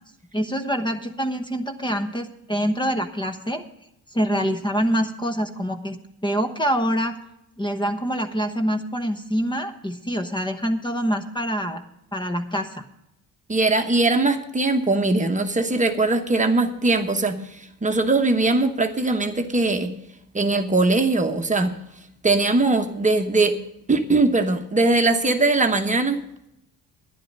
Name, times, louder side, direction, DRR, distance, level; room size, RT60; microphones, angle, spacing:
voice 1, 0.3-3.6 4.1-6.0 6.2-7.1 7.6-11.8 12.1-12.8, equal, 15° left, 6 dB, 1.0 m, -25 dB
voice 2, 13.5-19.9 20.3-21.7 22.2-23.6 23.9-26.2, right 3 dB, 20° right, 5 dB, 1.1 m, -21 dB
11.5 x 10.5 x 5.3 m, 0.81 s
cardioid pair, 120°, 35 cm